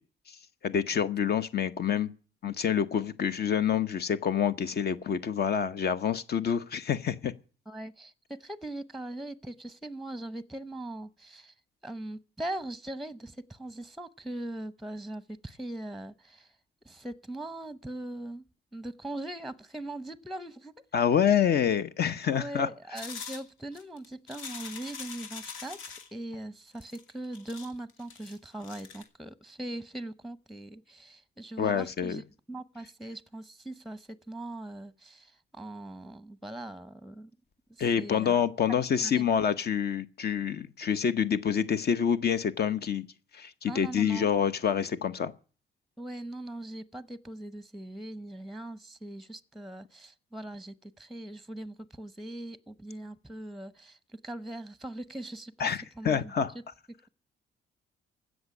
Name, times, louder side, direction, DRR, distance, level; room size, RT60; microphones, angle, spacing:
voice 1, 0.6-2.1 2.4-7.3 20.9-22.7 31.6-32.2 37.8-43.1 43.3-45.3 55.6-56.5, left 8 dB, 55° left, 0.9 m, -27 dB
voice 2, 7.7-11.5 11.8-16.5 16.8-18.4 18.7-20.7 22.3-32.2 32.5-37.3 37.7-38.4 39.0-39.3 43.7-44.3 46.0-56.3, right 1 dB, ahead, 0.8 m, -40 dB
sound 1, 23.0-26.1 26.8-29.0, left 5 dB, 90° left, 2.3 m, -43 dB
16.0 x 6.4 x 9.7 m
cardioid pair, 90°, 20 cm